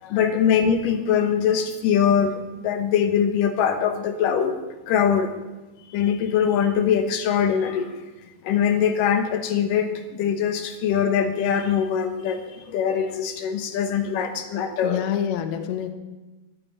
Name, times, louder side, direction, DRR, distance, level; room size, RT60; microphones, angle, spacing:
voice 1, 0.0-4.6 4.9-5.3 5.9-7.9 8.4-15.0, left 8 dB, 85° left, 6 dB, 2.8 m, -22 dB
voice 2, 14.8-15.9, left 9 dB, 65° left, 7 dB, 2.1 m, -26 dB
11.0 x 9.2 x 9.0 m, 1.1 s
omnidirectional pair, 3.7 m